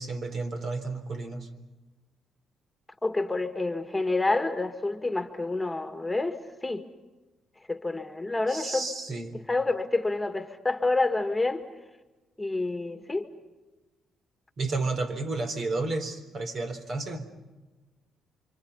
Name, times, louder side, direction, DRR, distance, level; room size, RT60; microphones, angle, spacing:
voice 1, 0.0-1.5 8.5-9.4 14.6-17.3, right 3 dB, 55° right, 7 dB, 3.7 m, -32 dB
voice 2, 3.0-6.8 7.7-8.9 9.3-11.6 12.4-13.3, left 2 dB, 10° left, 7 dB, 1.9 m, -28 dB
29.0 x 25.5 x 5.6 m, 1.2 s
cardioid pair, 90°, 0 cm